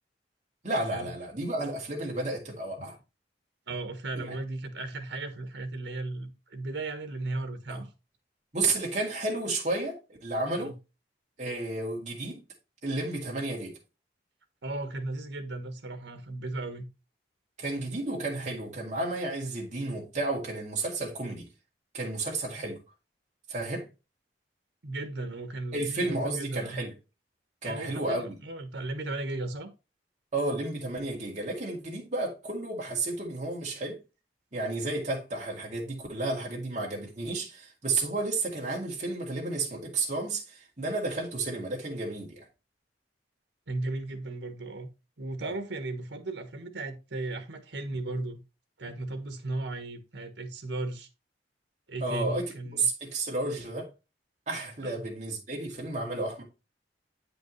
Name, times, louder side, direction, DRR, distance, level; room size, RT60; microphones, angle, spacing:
voice 1, 0.6-3.0 4.2-4.3 7.7-7.8 8.5-9.9 10.2-10.7 11.4-12.4 12.8-13.7 17.6-21.5 21.9-22.8 23.5-23.9 25.7-26.9 27.6-28.4 30.3-34.0 34.5-42.5 45.4-45.5 52.0-52.4 52.8-53.9 54.5-56.4, right 2 dB, 40° right, 2.2 m, -32 dB
voice 2, 3.7-7.9 10.6-10.7 14.6-16.9 24.8-26.8 27.6-29.7 43.7-44.9 45.2-48.4 48.8-51.1 51.9-52.9 54.8-55.0, right 2 dB, 85° right, 1.2 m, -36 dB
8.7 x 5.2 x 3.1 m
head